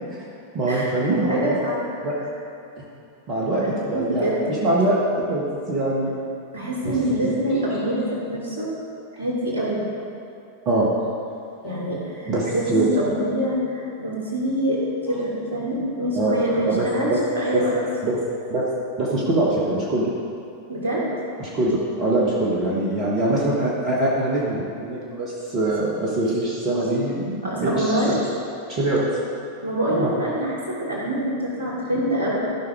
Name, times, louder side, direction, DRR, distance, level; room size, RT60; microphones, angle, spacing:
voice 1, 0.5-1.6 2.0-2.1 3.3-3.6 3.9-6.1 6.8-7.6 10.6-10.9 12.3-12.9 16.1-16.4 16.6-17.2 17.5-17.6 18.0-18.2 18.5-20.1 21.4-28.2 28.7-29.0 29.9-30.1, right 2 dB, 35° right, -5 dB, 1.6 m, -23 dB
voice 2, 1.3-1.8 3.5-4.6 6.5-8.7 9.1-9.8 11.6-14.8 15.1-17.8 20.7-21.0 27.4-28.3 29.6-32.4, right 1 dB, 65° right, -5 dB, 2.8 m, -25 dB
14.0 x 5.6 x 4.9 m, 2.5 s
figure-of-eight pair, 90°, 0 cm